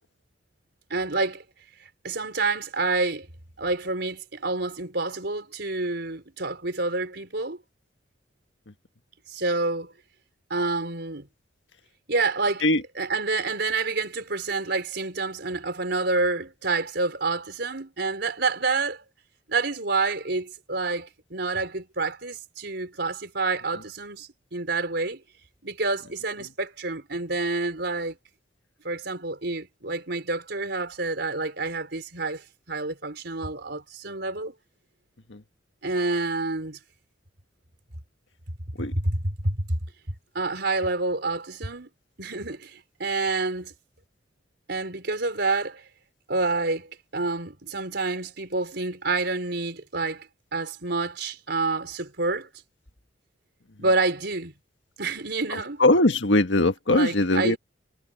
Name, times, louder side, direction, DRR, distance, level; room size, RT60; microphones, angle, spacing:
voice 1, 0.9-1.4 1.8-3.3 3.6-7.6 9.3-9.9 10.5-11.3 12.1-12.7 12.9-19.0 19.5-25.2 25.6-28.2 28.8-34.5 35.8-36.8 38.9-39.8 40.3-41.9 42.2-43.7 44.7-45.8 46.3-52.5 53.8-54.5 55.0-55.8 56.9-57.6, right 3 dB, 65° right, 5.1 m, -28 dB
voice 2, 55.8-57.6, left 2 dB, 75° left, 1.7 m, -20 dB
head